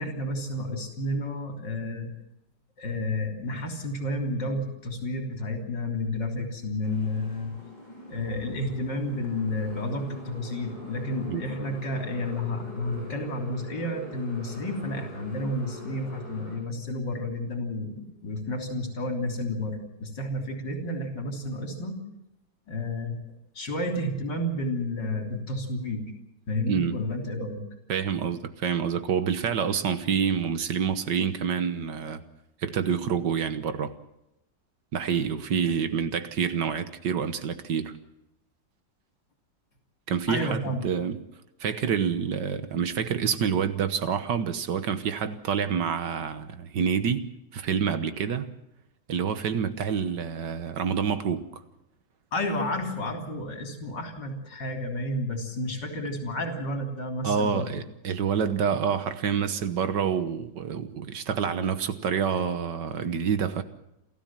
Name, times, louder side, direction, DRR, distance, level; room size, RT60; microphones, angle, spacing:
voice 1, 0.0-2.1 2.8-7.5 8.1-22.0 22.7-23.2 23.6-26.1 26.5-27.6 40.3-40.8 52.3-57.8, left 1 dB, 65° left, 3 dB, 4.0 m, -31 dB
Motorcycle, 6.8-16.6, left 1 dB, 20° left, 8.1 m, -44 dB
voice 2, 26.7-27.0 27.9-32.2 32.6-33.9 34.9-37.9 40.1-40.6 40.8-41.2 41.6-47.2 47.5-48.5 49.1-51.6 57.2-63.6, right 7 dB, 70° right, 11 dB, 1.8 m, -27 dB
28.5 x 13.5 x 7.5 m, 0.86 s
omnidirectional pair, 2.0 m